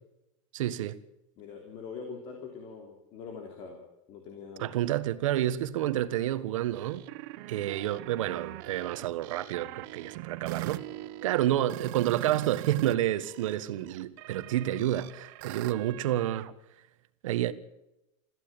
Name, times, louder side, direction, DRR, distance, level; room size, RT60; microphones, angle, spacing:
voice 1, 0.5-1.0 4.6-7.0 7.5-10.8 11.2-16.5 17.2-17.5, right 13 dB, 90° right, 1.5 m, -29 dB
voice 2, 1.4-3.8 4.1-4.7, left 5 dB, 35° left, 3.2 m, -43 dB
sound 1, 6.7-12.9 13.2-16.5, right 19 dB, 45° right, 0.9 m, -42 dB
21.5 x 15.0 x 8.8 m
supercardioid pair, 180°, 16 cm